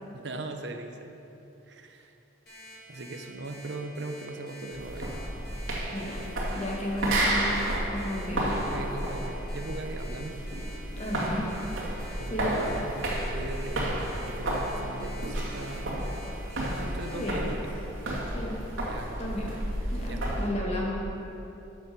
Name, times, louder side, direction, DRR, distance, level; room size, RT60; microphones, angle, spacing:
voice 1, 0.1-1.2 1.7-2.1 2.9-5.2 8.7-10.4 11.9-12.9 13.3-13.9 14.3-16.1 16.6-17.8 18.9-19.3 20.1-20.2, right 2 dB, 60° right, 5 dB, 0.8 m, -39 dB
Alarm, 2.5-17.3, equal, 55° left, 2.7 m, -48 dB
sound 1, 4.7-20.5, right 1 dB, 90° right, 2.1 m, -32 dB
voice 2, 5.9-6.3 6.5-8.6 10.8-11.5 12.3-12.7 17.1-17.5 18.3-18.6 19.2-19.5 19.9-21.1, equal, 30° left, -4 dB, 2.0 m, -33 dB
13.0 x 7.1 x 5.4 m, 3.0 s
head